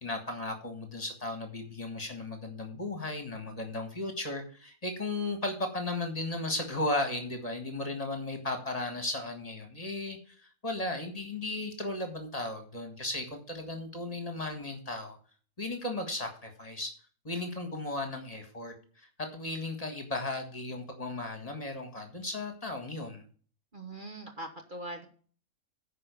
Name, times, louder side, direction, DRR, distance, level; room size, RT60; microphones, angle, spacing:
voice 1, 0.0-10.2 10.6-15.2 15.6-16.9 17.3-23.2, left 2 dB, 25° left, 4 dB, 1.7 m, -35 dB
voice 2, 23.7-25.1, right 1 dB, 40° right, 4 dB, 1.1 m, -41 dB
9.8 x 5.1 x 6.9 m, 0.42 s
omnidirectional pair, 1.4 m